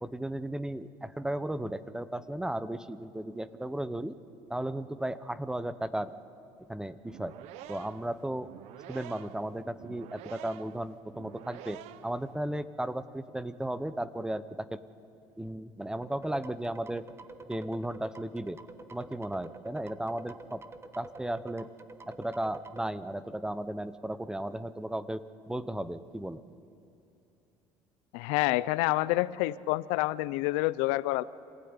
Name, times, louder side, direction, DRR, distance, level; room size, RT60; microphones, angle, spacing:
voice 1, 0.0-4.1 4.5-6.1 6.7-7.3 7.7-8.5 8.9-14.8 15.4-17.1 17.5-18.6 18.9-20.6 21.0-21.7 22.1-26.4, right 1 dB, 5° right, 15 dB, 0.8 m, -35 dB
sound 1, 7.0-12.3, right 13 dB, 75° right, 0.8 m, -48 dB
sound 2, 16.0-22.9, right 3 dB, 25° right, 1.3 m, -49 dB
voice 2, 28.1-31.2, left 19 dB, 85° left, 18 dB, 0.5 m, -28 dB
26.0 x 16.0 x 9.8 m, 2.8 s
supercardioid pair, 105°, 11 cm